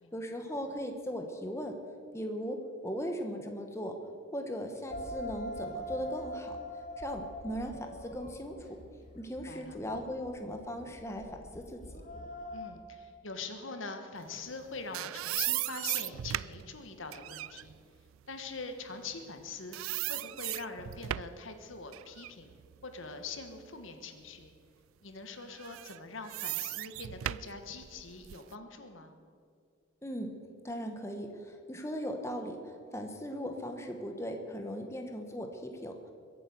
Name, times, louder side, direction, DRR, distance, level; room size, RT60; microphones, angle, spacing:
voice 1, 0.1-1.8 2.1-4.0 4.3-6.6 7.0-8.6 9.1-12.0 30.0-30.3 30.6-36.1, equal, 15° left, 4 dB, 1.1 m, -38 dB
sound 1, 4.9-12.7, left 1 dB, 40° left, 2.2 m, -43 dB
voice 2, 9.5-9.8 12.5-17.7 18.3-22.5 22.8-24.5 25.0-29.1, left 4 dB, 75° left, 6 dB, 1.5 m, -43 dB
sound 2, 14.5-19.4 19.7-21.5 21.9-23.9 24.4-24.5 25.5-28.5, right 15 dB, 85° right, 0.3 m, -37 dB
22.5 x 8.7 x 6.9 m, 2.2 s
head